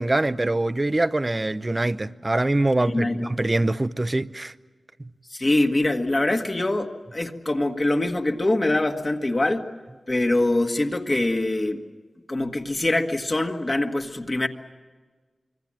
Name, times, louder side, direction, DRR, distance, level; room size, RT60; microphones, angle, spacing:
voice 1, 0.0-4.5, right 2 dB, 25° right, 0.7 m, -24 dB
voice 2, 2.8-3.3 5.3-9.6 10.1-11.8 12.3-14.5, left 2 dB, 30° left, 1.6 m, -24 dB
25.5 x 24.5 x 7.6 m
wide cardioid pair, 100°, 0 cm